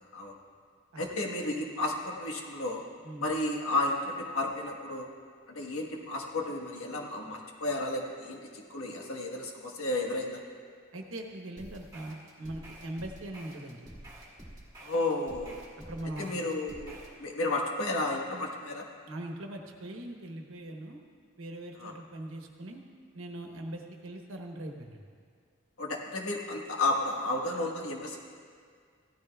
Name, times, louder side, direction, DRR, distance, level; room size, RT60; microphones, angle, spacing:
voice 1, 1.0-2.8 3.2-5.1 5.5-10.4 14.8-15.6 16.2-18.8 21.8-21.9 25.8-28.2, left 2 dB, 75° left, 0 dB, 1.4 m, -32 dB
voice 2, 10.9-13.9 15.9-16.3 19.1-21.0 21.4-22.8 23.1-25.0, right 1 dB, 65° right, 2 dB, 1.1 m, -41 dB
sound 1, 11.6-17.2, right 1 dB, 20° right, 1.6 m, -49 dB
16.0 x 13.0 x 2.4 m, 2.1 s
head